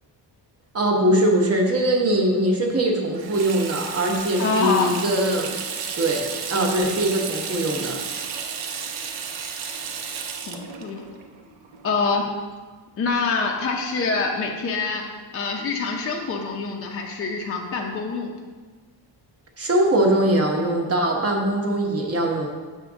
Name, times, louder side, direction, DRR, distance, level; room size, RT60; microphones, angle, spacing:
voice 1, 0.7-5.5 6.0-8.0 19.6-22.5, right 1 dB, 35° right, 0 dB, 1.0 m, -21 dB
Water tap faucet / Sink (filling or washing), 3.1-12.5, right 6 dB, 75° right, 0.8 m, -33 dB
voice 2, 4.4-5.0 10.5-11.1 11.8-12.3 13.0-15.1 15.3-18.3, left 4 dB, 30° left, 1 dB, 0.5 m, -25 dB
7.1 x 3.6 x 6.1 m, 1.4 s
wide cardioid pair, 175°, 44 cm